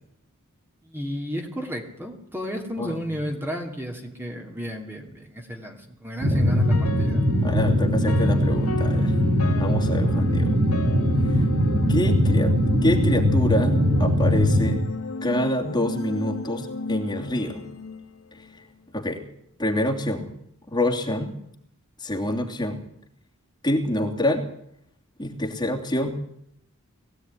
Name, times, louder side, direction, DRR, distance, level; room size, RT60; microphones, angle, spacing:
voice 1, 0.8-7.2 10.4-10.5, equal, 10° right, 2 dB, 2.9 m, -32 dB
sound 1, 6.2-14.8, equal, 45° right, 2.3 m, -21 dB
sound 2, 6.4-18.7, left 2 dB, 80° left, 2.2 m, -33 dB
voice 2, 7.4-9.1 9.6-10.4 11.2-11.4 11.9-12.5 12.8-14.8 15.2-17.6 18.3-18.5 18.9-19.2 19.6-20.3 20.7-21.4 22.0-22.8 23.6-24.5 25.2-26.1, left 1 dB, 20° left, 1 dB, 3.0 m, -26 dB
21.5 x 16.5 x 9.8 m, 0.74 s
head